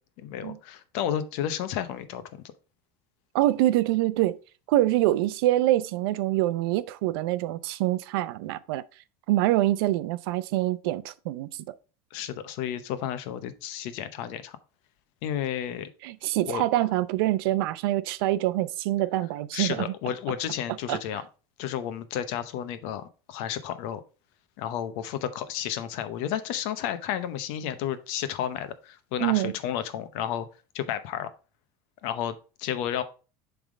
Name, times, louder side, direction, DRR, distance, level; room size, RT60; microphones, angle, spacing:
voice 1, 0.2-2.2 12.1-14.6 15.2-15.9 16.3-16.6 19.5-21.2 21.6-24.0 24.6-30.5 30.7-31.3 32.0-33.0, left 10 dB, 60° left, 0.8 m, -32 dB
voice 2, 3.3-4.4 4.7-8.8 9.3-11.6 16.0-19.9 20.9-21.2 29.2-29.5, right 15 dB, 85° right, 0.5 m, -25 dB
7.2 x 3.5 x 5.0 m
cardioid pair, 170°, 12 cm